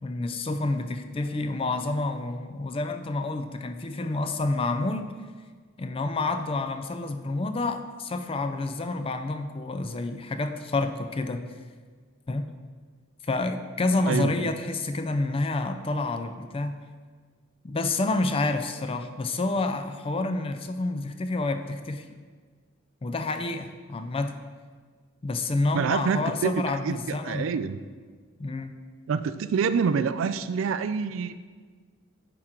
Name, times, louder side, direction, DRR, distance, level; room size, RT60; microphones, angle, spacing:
voice 1, 0.0-5.1 5.8-11.4 12.3-12.5 13.3-16.8 17.6-22.1 23.0-24.4 25.2-27.6 28.4-28.7, left 2 dB, 25° left, 8 dB, 0.4 m, -29 dB
voice 2, 14.1-14.5 25.7-26.5 26.8-27.8 29.1-31.3, right 6 dB, 65° right, 12 dB, 0.3 m, -26 dB
9.8 x 3.7 x 4.5 m, 1.5 s
head